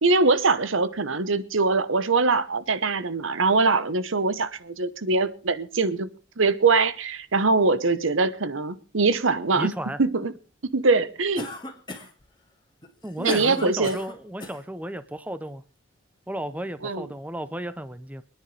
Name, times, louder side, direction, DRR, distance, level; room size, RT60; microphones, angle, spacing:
voice 1, 0.0-6.1 6.4-9.7 10.0-10.3 10.7-11.5 13.2-14.0 16.8-17.1, right 3 dB, 75° right, 1.0 m, -22 dB
voice 2, 9.5-10.0 13.0-15.6 16.3-18.2, right 1 dB, 5° right, 0.6 m, -34 dB
Cough, 11.4-12.2 12.8-14.6, left 1 dB, 20° left, 1.8 m, -35 dB
26.5 x 10.0 x 3.3 m
head